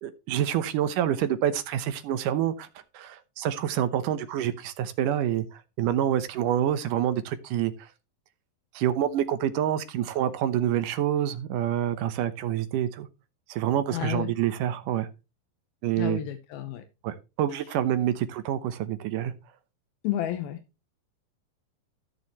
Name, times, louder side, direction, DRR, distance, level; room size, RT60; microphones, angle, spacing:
voice 1, 0.0-2.7 2.9-7.9 8.7-13.1 13.5-15.1 15.8-16.2 17.0-19.3, right 11 dB, 70° right, 2.3 m, -27 dB
voice 2, 13.9-14.3 16.0-16.8 17.5-17.6 20.0-20.6, left 12 dB, 80° left, 2.8 m, -31 dB
15.5 x 6.8 x 3.0 m
omnidirectional pair, 4.2 m